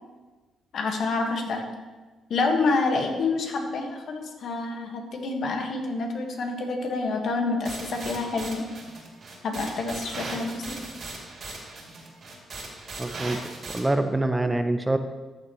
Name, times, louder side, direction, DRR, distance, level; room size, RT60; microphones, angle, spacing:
voice 1, 0.7-1.7 2.3-8.7 9.4-10.8, left 3 dB, 60° left, 2 dB, 1.5 m, -28 dB
sound 1, 7.6-13.8, right 3 dB, 50° right, 2.7 m, -38 dB
voice 2, 13.0-13.4 13.7-15.0, right 2 dB, 15° right, 9 dB, 0.5 m, -25 dB
13.5 x 6.4 x 3.1 m, 1.3 s
cardioid pair, 90°, 0 cm